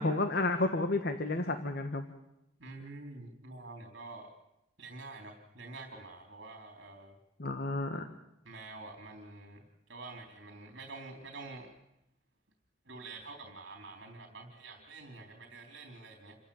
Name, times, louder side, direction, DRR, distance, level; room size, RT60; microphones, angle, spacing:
voice 1, 0.0-2.0 7.4-8.0, left 2 dB, 60° left, 7 dB, 1.5 m, -31 dB
voice 2, 2.6-4.3 4.8-7.1 8.4-9.6 9.9-11.7 12.9-16.4, right 3 dB, 65° right, 3 dB, 3.9 m, -47 dB
28.5 x 15.5 x 8.8 m, 0.84 s
head